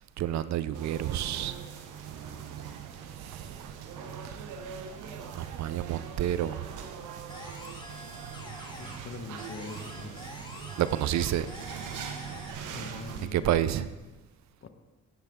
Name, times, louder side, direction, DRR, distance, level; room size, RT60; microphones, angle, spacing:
voice 1, 0.2-1.6 2.1-2.9 3.2-3.6 4.2-4.7 5.3-6.7 10.8-11.5 13.2-13.9, right 11 dB, 65° right, 0.5 m, -30 dB
sound 1, 0.7-13.3, right 7 dB, 85° right, 1.0 m, -42 dB
sound 2, 7.3-9.1 9.4-12.5, left 1 dB, 15° left, 1.8 m, -46 dB
voice 2, 8.8-10.3 12.6-14.0 14.6-14.7, left 4 dB, 45° left, 1.2 m, -43 dB
16.5 x 7.5 x 3.7 m
cardioid pair, 90°, 30 cm